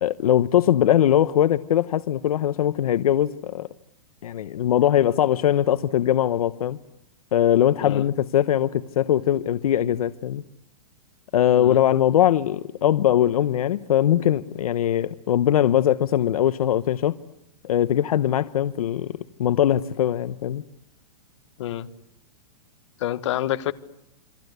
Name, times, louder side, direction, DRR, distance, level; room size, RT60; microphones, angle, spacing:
voice 1, 0.0-3.7 4.2-6.8 7.3-10.4 11.3-17.2 17.6-19.1 19.4-20.6, left 11 dB, 70° left, 13 dB, 1.0 m, -21 dB
voice 2, 23.0-23.7, left 13 dB, 50° left, 12 dB, 1.5 m, -27 dB
28.5 x 24.0 x 8.1 m, 0.80 s
supercardioid pair, 170°, 19 cm